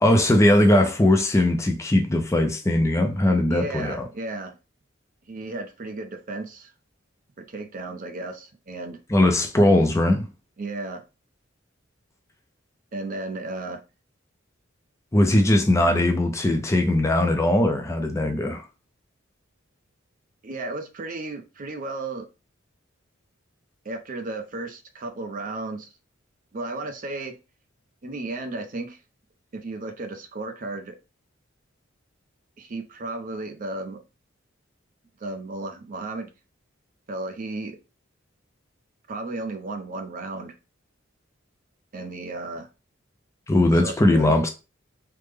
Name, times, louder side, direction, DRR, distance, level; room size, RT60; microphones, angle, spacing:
voice 1, 0.0-4.1 9.1-10.3 15.1-18.6 43.5-44.5, left 1 dB, 15° left, 0.4 m, -20 dB
voice 2, 3.5-4.5 5.2-6.7 7.4-9.0 10.6-11.0 12.9-13.8 20.4-22.2 23.8-25.9 26.5-27.3 28.0-29.0 29.5-31.0 32.6-34.0 35.2-36.3 37.1-37.8 39.1-40.5 41.9-42.7 43.7-44.5, right 2 dB, 45° right, 0.5 m, -34 dB
3.3 x 2.1 x 3.3 m
head